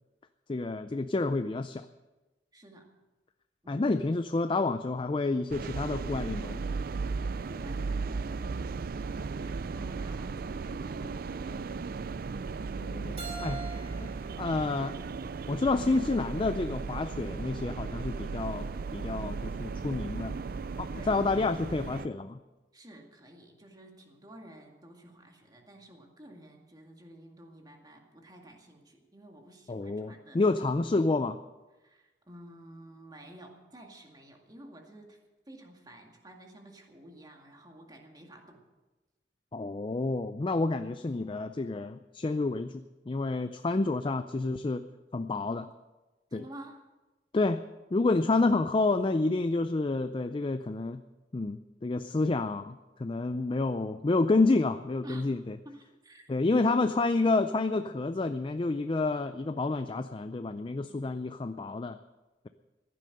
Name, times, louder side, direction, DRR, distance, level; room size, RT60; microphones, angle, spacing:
voice 1, 0.5-1.8 3.7-6.7 12.8-13.2 13.4-13.6 14.4-14.9 15.5-20.4 20.8-22.4 29.7-31.4 39.5-44.8 45.1-45.7 46.3-46.5 47.3-47.6 47.9-51.0 51.3-55.5 56.3-62.0, left 3 dB, 30° left, 10 dB, 0.4 m, -29 dB
voice 2, 2.5-2.9 3.6-4.0 7.5-11.7 21.0-21.2 22.7-30.4 30.8-31.0 31.8-35.2 35.5-38.6 46.3-46.8 55.0-55.3 55.6-56.8 60.9-61.2, right 1 dB, 20° right, 2 dB, 2.0 m, -51 dB
sound 1, 5.5-22.1, right 4 dB, 55° right, 0.4 m, -36 dB
Keyboard (musical), 13.2-16.0, right 4 dB, 40° right, 2.5 m, -45 dB
15.5 x 11.0 x 6.6 m, 1.1 s
head